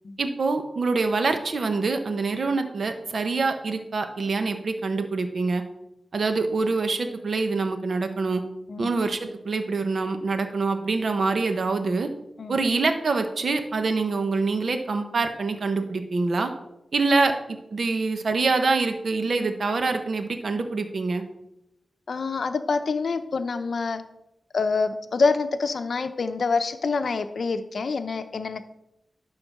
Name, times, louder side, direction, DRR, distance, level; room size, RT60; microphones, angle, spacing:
voice 1, 0.2-5.6 6.1-8.4 8.8-12.1 12.5-16.5 16.9-17.3 17.7-21.2, right 3 dB, 65° right, 7 dB, 1.0 m, -25 dB
voice 2, 22.1-24.0 24.5-28.6, left 4 dB, 70° left, 8 dB, 0.7 m, -26 dB
11.0 x 3.9 x 6.7 m, 0.87 s
cardioid pair, 65°, 0 cm